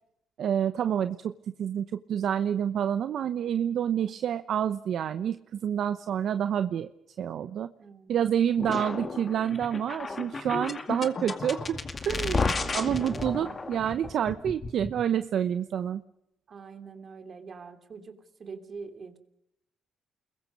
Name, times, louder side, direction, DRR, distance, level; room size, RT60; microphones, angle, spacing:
voice 1, 0.4-1.3 1.6-6.9 7.2-7.7 8.1-11.8 12.1-12.4 12.7-16.0, right 9 dB, 65° right, 11 dB, 0.9 m, -28 dB
voice 2, 7.8-8.2 8.7-8.8 9.9-10.2 13.0-13.6 16.5-19.2, right 5 dB, 45° right, 7 dB, 3.0 m, -45 dB
sound 1, 8.6-15.0, left 3 dB, 35° left, 2.3 m, -33 dB
29.5 x 21.5 x 5.4 m, 0.80 s
cardioid pair, 90°, 0 cm